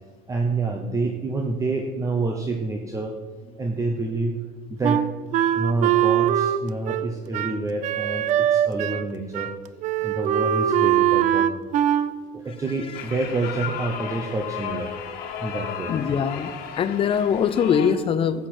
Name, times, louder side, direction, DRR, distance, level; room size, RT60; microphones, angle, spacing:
voice 1, 0.3-3.2 3.4-4.4 4.7-5.0 5.5-9.5 10.0-11.5 12.3-14.9 15.4-15.9, right 3 dB, 20° right, 3 dB, 0.9 m, -27 dB
Wind instrument woodwind instrument, 4.8-9.1 9.3-9.5 9.8-12.1, right 11 dB, 50° right, 0.5 m, -22 dB
sound 1, 12.9-17.9, left 8 dB, 65° left, 1.6 m, -34 dB
voice 2, 15.9-18.5, left 7 dB, 35° left, 13 dB, 0.6 m, -22 dB
14.5 x 8.2 x 4.4 m, 1.4 s
cardioid pair, 145°, 17 cm